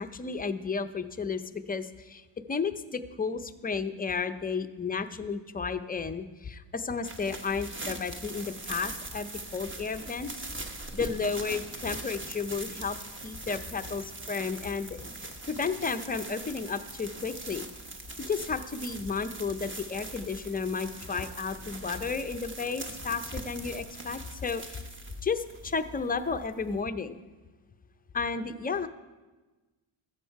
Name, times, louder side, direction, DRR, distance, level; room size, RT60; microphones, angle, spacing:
voice 1, 0.0-10.4 10.9-13.0 13.2-15.0 15.5-17.7 18.2-24.8 25.2-27.2 28.1-28.9, left 5 dB, 20° left, 9 dB, 0.5 m, -33 dB
sound 1, 7.0-26.8, right 2 dB, 25° right, 1.1 m, -42 dB
13.5 x 7.4 x 4.6 m, 1.2 s
cardioid pair, 100°, 47 cm